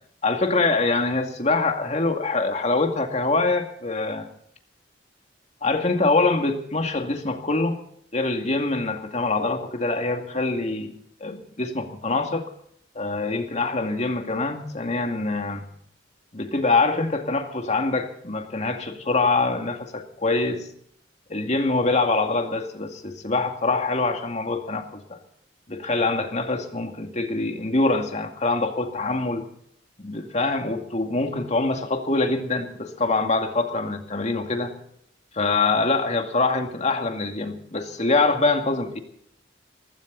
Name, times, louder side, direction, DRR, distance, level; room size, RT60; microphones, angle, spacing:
voice 1, 0.2-4.3 5.6-7.8 8.1-10.9 11.2-12.4 13.0-15.6 16.3-20.7 21.3-25.2 25.7-29.5 30.0-34.7 35.3-39.0, left 3 dB, 40° left, 5 dB, 2.2 m, -24 dB
19.5 x 16.5 x 4.0 m, 0.67 s
head